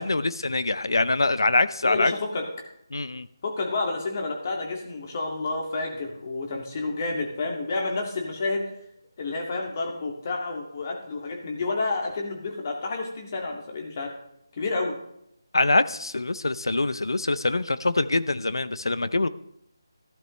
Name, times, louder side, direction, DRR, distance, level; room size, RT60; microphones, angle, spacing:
voice 1, 0.0-2.1 2.9-3.3 15.5-19.3, left 2 dB, 80° left, 15 dB, 0.6 m, -24 dB
voice 2, 1.8-2.4 3.4-8.6 9.2-14.1 14.6-15.0, left 3 dB, 35° left, 1 dB, 2.1 m, -30 dB
14.5 x 12.0 x 3.2 m, 0.78 s
figure-of-eight pair, 165°, 2 cm